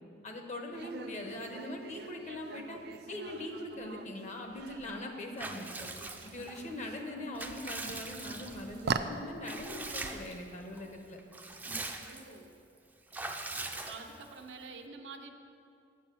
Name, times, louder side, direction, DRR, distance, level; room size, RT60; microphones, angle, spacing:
voice 1, 0.2-2.8 3.1-5.9 6.2-11.2, left 1 dB, 40° left, 3 dB, 1.0 m, -41 dB
sound 1, 0.7-12.0, right 5 dB, 65° right, 0.4 m, -43 dB
Water / Bathtub (filling or washing) / Liquid, 5.4-6.6 7.1-8.8 9.4-10.4 10.8-10.9 11.2-12.4 13.1-14.4, right 2 dB, 10° right, 0.5 m, -41 dB
voice 2, 12.0-12.5 13.8-15.4, right 4 dB, 85° right, 4 dB, 0.8 m, -47 dB
8.0 x 7.0 x 6.9 m, 2.6 s
head